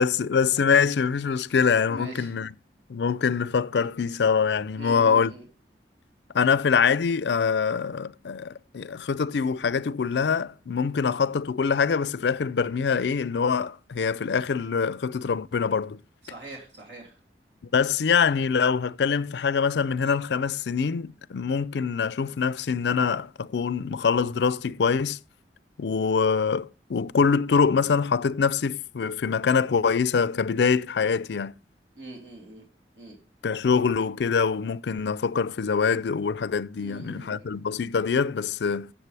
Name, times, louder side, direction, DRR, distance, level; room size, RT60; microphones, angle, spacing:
voice 1, 0.0-2.5 2.9-5.3 6.3-16.0 17.7-25.2 25.8-31.5 33.4-38.9, left 6 dB, 70° left, 0.4 m, -24 dB
voice 2, 1.9-2.4 4.8-5.5 16.2-17.2 31.9-32.6 32.9-33.2 36.8-37.4, right 2 dB, 75° right, 3.0 m, -42 dB
13.5 x 7.6 x 3.3 m
head